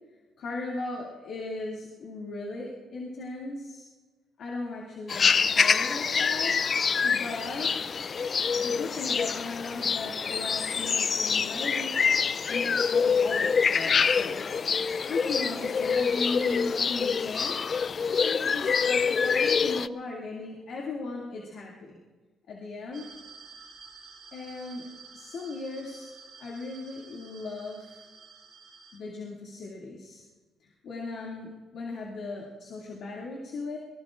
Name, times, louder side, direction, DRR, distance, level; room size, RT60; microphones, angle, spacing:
voice 1, 0.4-3.8 4.4-6.6 7.0-7.7 8.5-12.0 12.5-14.4 15.1-17.6 18.2-22.0 22.5-23.1 24.3-24.9 25.1-26.1 26.4-28.0 28.9-30.2 30.6-33.8, left 3 dB, 70° left, -3 dB, 2.3 m, -37 dB
sound 1, 5.1-19.9, left 6 dB, 45° left, 0.4 m, -26 dB
sound 2, 22.9-29.0, right 5 dB, 75° right, 4.5 m, -50 dB
25.0 x 19.5 x 2.5 m, 1.3 s
cardioid pair, 90°, 0 cm